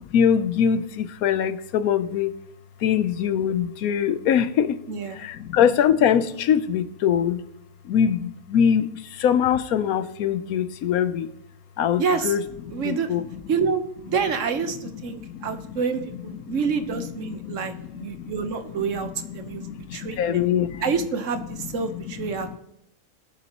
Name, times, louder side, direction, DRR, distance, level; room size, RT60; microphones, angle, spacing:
voice 1, 0.0-2.3 2.8-4.8 5.1-7.4 7.8-11.3 11.8-13.2 15.2-15.6 16.3-16.6 17.4-18.3 18.8-18.9 19.4-20.8 21.6-22.1 22.4-22.6, left 8 dB, 90° left, 13 dB, 1.2 m, -23 dB
voice 2, 4.9-5.2 12.0-12.3 12.7-13.1 13.5-13.8 14.1-20.4 20.8-22.6, right 5 dB, 65° right, 8 dB, 1.3 m, -27 dB
20.5 x 7.0 x 3.0 m, 0.80 s
omnidirectional pair, 1.5 m